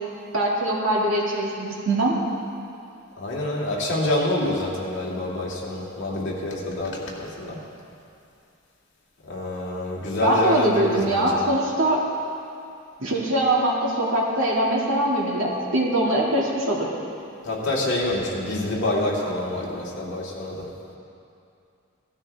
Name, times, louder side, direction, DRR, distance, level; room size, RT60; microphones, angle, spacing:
voice 1, 0.3-2.1 10.2-12.0 13.0-16.9, right 1 dB, 65° right, -3 dB, 2.2 m, -22 dB
voice 2, 3.2-7.6 9.2-11.4 17.4-20.6, left 1 dB, 55° left, -4 dB, 2.3 m, -27 dB
17.5 x 12.5 x 3.5 m, 2.6 s
head